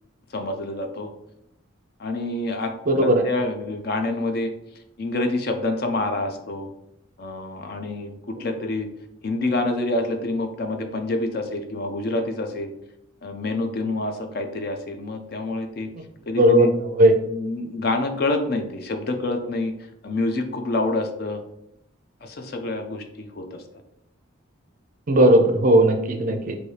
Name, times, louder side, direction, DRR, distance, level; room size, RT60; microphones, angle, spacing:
voice 1, 0.3-1.1 2.0-2.7 3.0-4.5 5.0-6.7 7.2-8.9 9.2-12.7 13.2-15.9 16.3-16.7 17.3-19.7 20.0-21.4 22.2-23.6, left 2 dB, 45° left, 6 dB, 0.4 m, -27 dB
voice 2, 2.9-3.2 16.4-17.1 25.1-26.6, right 1 dB, 40° right, 5 dB, 0.4 m, -17 dB
4.2 x 2.7 x 3.2 m, 0.79 s
head